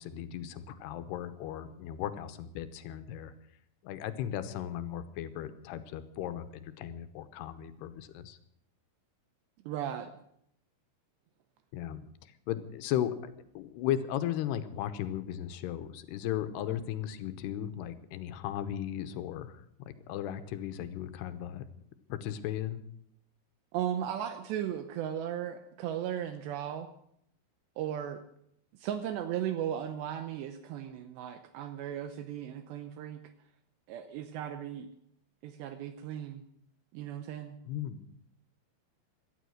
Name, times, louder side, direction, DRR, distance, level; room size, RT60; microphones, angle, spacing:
voice 1, 0.0-3.3 3.8-8.4 11.7-21.7 22.1-22.8 37.7-38.0, left 11 dB, 75° left, 11 dB, 2.8 m, -36 dB
voice 2, 9.7-10.1 23.7-26.9 27.8-28.2 28.8-33.2 33.9-34.9 35.4-36.4 36.9-37.6, right 10 dB, 80° right, 9 dB, 2.9 m, -36 dB
18.0 x 12.5 x 6.4 m, 0.73 s
omnidirectional pair, 5.2 m